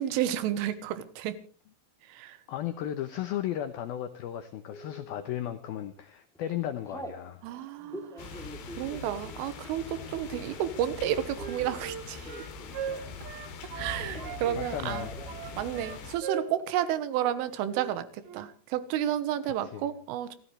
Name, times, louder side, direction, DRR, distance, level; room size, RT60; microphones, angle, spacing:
voice 1, 0.0-1.4 2.1-2.4 7.4-8.3 8.8-12.3 13.8-15.1 15.6-18.1 18.3-20.4, right 11 dB, 90° right, 13 dB, 3.8 m, -31 dB
voice 2, 2.5-7.4 12.5-12.6 14.5-15.2 19.4-19.9, left 11 dB, 85° left, 10 dB, 2.1 m, -35 dB
Telephone, 4.7-5.2 5.8-6.1 6.3-7.2 7.8-13.3 13.5-14.6 14.9-15.4 15.7-15.8 16.0-16.6, equal, ahead, 1.7 m, -46 dB
sound 1, 8.2-16.2, left 4 dB, 65° left, 4.3 m, -42 dB
Wind instrument woodwind instrument, 11.0-14.4 14.9-16.9 17.2-17.4 17.7-17.9 18.2-18.5, right 8 dB, 60° right, 3.2 m, -39 dB
29.0 x 14.0 x 3.3 m, 0.42 s
omnidirectional pair, 5.6 m